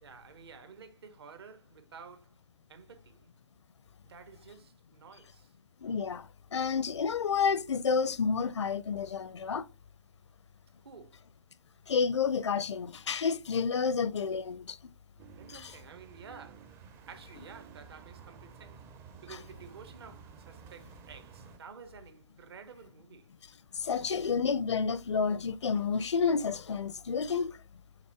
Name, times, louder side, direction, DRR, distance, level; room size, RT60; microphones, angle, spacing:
voice 1, 0.0-2.3 2.7-3.3 4.0-5.5 10.8-11.2 15.4-16.7 17.1-18.9 19.2-23.3, right 6 dB, 60° right, 1.5 m, -51 dB
voice 2, 5.8-9.7 11.9-14.8 15.6-15.7 23.7-27.6, left 5 dB, 75° left, 0.5 m, -30 dB
sound 1, 15.2-21.6, right 7 dB, 15° right, 0.5 m, -52 dB
5.8 x 4.1 x 4.3 m
figure-of-eight pair, 135°, 15 cm